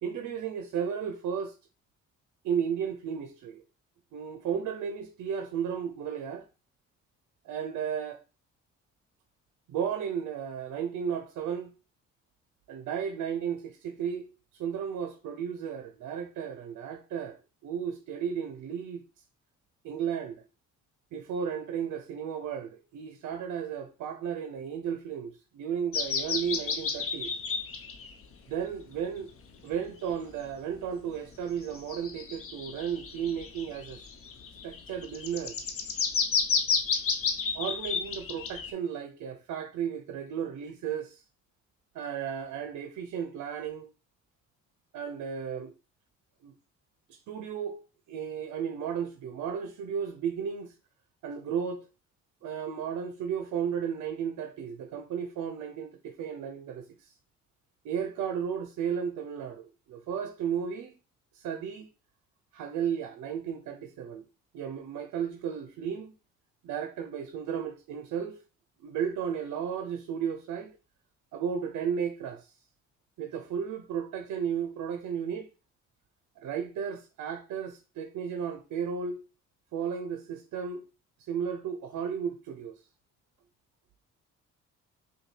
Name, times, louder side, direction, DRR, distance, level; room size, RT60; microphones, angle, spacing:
voice 1, 0.0-1.6 2.4-3.6 4.1-6.5 7.4-8.2 9.7-11.7 12.7-19.0 19.8-20.4 21.1-27.3 28.5-29.3 29.6-34.0 34.6-35.7 37.5-41.2 41.9-43.9 44.9-45.7 46.4-46.5 47.1-47.8 48.1-50.7 51.2-51.8 52.4-57.1 57.8-61.0 61.3-61.9 62.5-64.2 64.5-66.1 66.6-68.4 68.8-70.8 71.3-72.5 73.2-75.5 76.4-79.2 79.7-80.9 81.2-82.8, right 7 dB, 75° right, 0.6 m, -34 dB
sound 1, 25.9-28.1 28.7-28.8 29.7-29.8 31.7-38.7, left 5 dB, 50° left, 0.8 m, -31 dB
5.1 x 2.3 x 3.2 m
cardioid pair, 90°, 30 cm